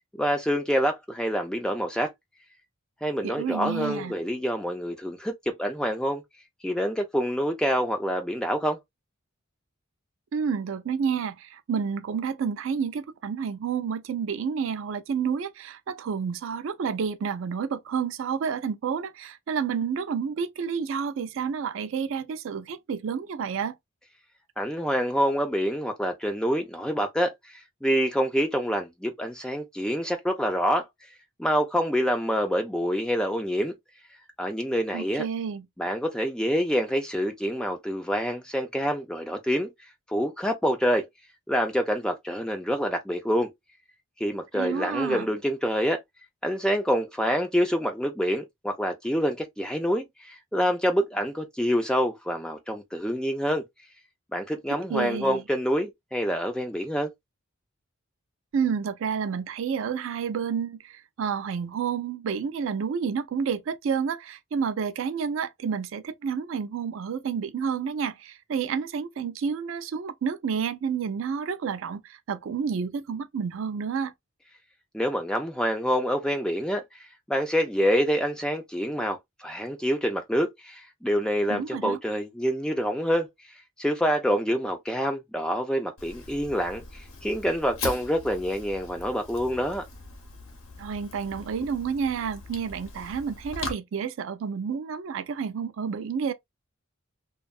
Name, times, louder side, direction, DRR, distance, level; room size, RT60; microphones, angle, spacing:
voice 1, 0.2-2.1 3.0-6.2 6.6-8.8 24.6-27.3 27.8-30.9 31.4-33.7 34.4-35.2 35.8-39.7 40.1-41.1 41.5-43.5 44.2-46.0 46.4-53.6 54.3-57.1 74.9-76.8 77.3-83.3 83.8-89.8, equal, 5° left, 0.4 m, -26 dB
voice 2, 3.2-4.2 10.3-23.8 34.9-35.7 44.5-45.3 54.9-55.4 58.5-74.1 81.5-82.0 90.8-96.3, right 6 dB, 65° right, 0.3 m, -30 dB
Fire, 86.0-93.7, left 3 dB, 70° left, 0.8 m, -40 dB
2.6 x 2.2 x 2.3 m
head